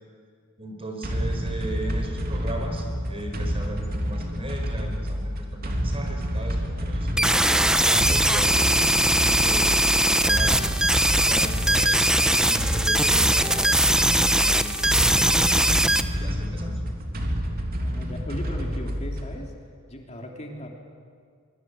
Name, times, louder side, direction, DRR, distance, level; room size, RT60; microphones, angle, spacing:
voice 1, 0.6-7.3 7.8-10.7 11.2-16.8, right 1 dB, 30° right, 3 dB, 4.7 m, -37 dB
sound 1, 1.0-19.4, equal, 45° right, 3.2 m, -29 dB
sound 2, 7.2-16.0, right 1 dB, 5° right, 0.8 m, -21 dB
sound 3, 7.8-11.8 12.1-12.6, left 1 dB, 85° left, 6.4 m, -46 dB
voice 2, 17.8-19.5 19.9-20.7, equal, 35° left, 1 dB, 3.2 m, -37 dB
24.5 x 23.5 x 9.4 m, 2.1 s
head